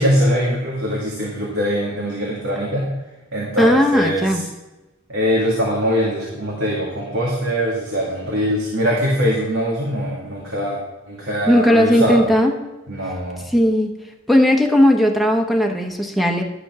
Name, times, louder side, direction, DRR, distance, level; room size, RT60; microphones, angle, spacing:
voice 1, 0.0-2.9 3.3-4.3 5.1-10.8 11.1-12.2 12.9-13.4, equal, 90° right, -5 dB, 2.1 m, -22 dB
voice 2, 3.6-4.4 11.5-12.6 13.5-13.9 14.3-16.4, left 1 dB, ahead, 1 dB, 1.0 m, -16 dB
11.5 x 5.1 x 6.1 m, 1.0 s
head